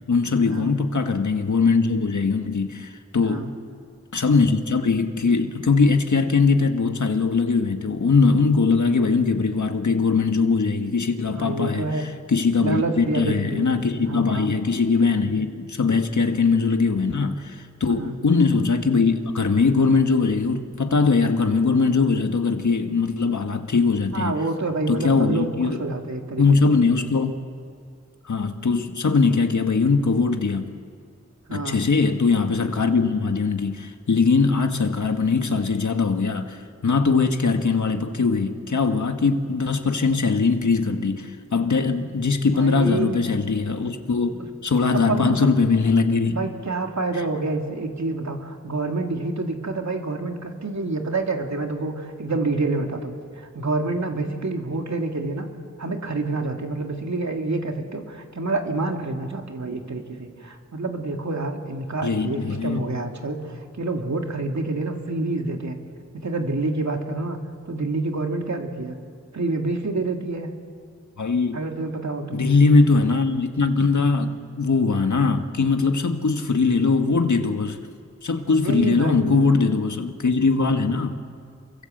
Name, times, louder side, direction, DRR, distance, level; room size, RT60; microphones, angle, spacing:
voice 1, 0.1-3.5 4.1-24.4 24.9-25.8 26.4-27.4 28.2-30.7 31.5-46.3 47.1-47.2 62.0-62.8 71.2-71.6 72.3-77.8 78.2-81.2, left 4 dB, 80° left, 1.6 m, -21 dB
voice 2, 11.3-12.1 12.6-13.7 14.1-14.5 18.0-18.2 24.1-26.7 31.5-31.8 42.6-43.2 44.4-44.5 44.9-45.5 46.3-55.5 55.8-65.8 66.2-67.4 67.7-69.0 69.3-70.5 71.5-72.4 78.6-79.5, right 3 dB, 70° right, 2.7 m, -27 dB
28.0 x 24.0 x 7.9 m
wide cardioid pair, 50°, 29 cm